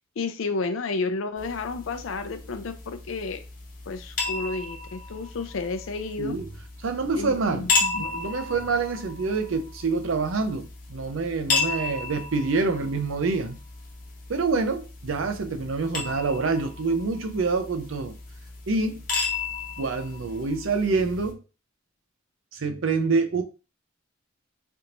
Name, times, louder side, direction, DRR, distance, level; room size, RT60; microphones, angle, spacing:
voice 1, 0.2-3.4 3.9-6.4 7.2-8.1, left 3 dB, 80° left, 0.5 m, -31 dB
sound 1, 1.4-21.3, left 4 dB, 40° left, 0.8 m, -34 dB
voice 2, 6.2-6.5 6.8-7.7 8.0-13.6 14.3-18.1 18.7-19.0 19.8-21.4 22.5-23.4, right 4 dB, 75° right, 0.6 m, -26 dB
3.5 x 2.5 x 2.9 m
head